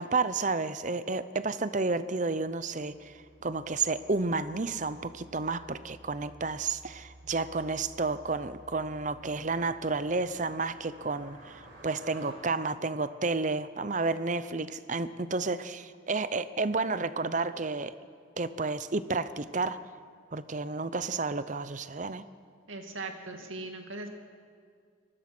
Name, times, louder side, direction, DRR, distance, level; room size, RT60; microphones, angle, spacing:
voice 1, 0.0-3.1 3.4-17.9 18.4-19.8 20.3-22.2, right 3 dB, 40° right, 14 dB, 0.7 m, -31 dB
Car passing by, 2.3-12.3, right 1 dB, 60° right, 4.8 m, -54 dB
voice 2, 22.7-24.1, right 2 dB, 85° right, 4 dB, 2.4 m, -39 dB
24.5 x 20.0 x 6.1 m, 2.1 s
head